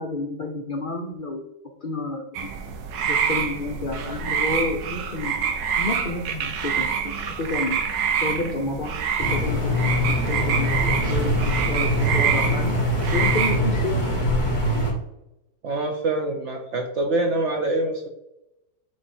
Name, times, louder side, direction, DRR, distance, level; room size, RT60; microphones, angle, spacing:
voice 1, 0.0-1.4 1.8-2.5 3.0-5.3 5.7-7.8 8.2-11.4 11.7-12.8 13.1-14.1, left 2 dB, 85° left, 1 dB, 0.4 m, -30 dB
sound 1, 2.3-13.6, right 7 dB, 75° right, 1.4 m, -26 dB
sound 2, 9.2-14.9, left 1 dB, 25° left, 1.5 m, -23 dB
voice 2, 15.6-18.1, right 2 dB, 60° right, 3 dB, 0.8 m, -25 dB
7.5 x 3.0 x 4.3 m, 0.89 s
omnidirectional pair, 2.0 m